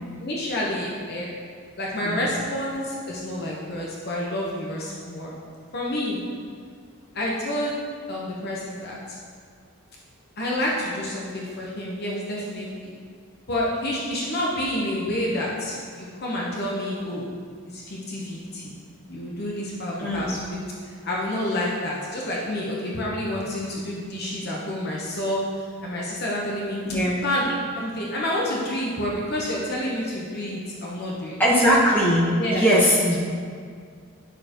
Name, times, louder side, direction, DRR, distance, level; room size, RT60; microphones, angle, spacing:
voice 1, 0.2-1.3 1.8-5.3 5.7-6.2 7.1-7.7 8.1-9.2 10.4-12.9 13.5-17.3 17.7-18.7 19.1-20.6 21.0-26.8 27.2-31.4 32.4-32.7, left 1 dB, 45° left, -4 dB, 1.0 m, -29 dB
voice 2, 20.0-20.4 26.8-27.2 31.4-33.2, equal, 10° left, -8 dB, 1.5 m, -20 dB
10.5 x 6.6 x 3.0 m, 2.1 s
head